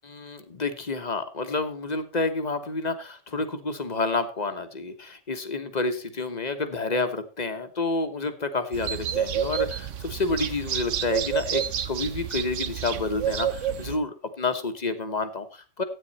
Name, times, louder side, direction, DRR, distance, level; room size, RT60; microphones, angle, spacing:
voice 1, 0.0-15.8, left 3 dB, 35° left, 8 dB, 1.3 m, -29 dB
sound 1, 8.7-14.0, right 9 dB, 80° right, 1.2 m, -29 dB
13.0 x 9.1 x 4.2 m, 0.34 s
omnidirectional pair, 1.3 m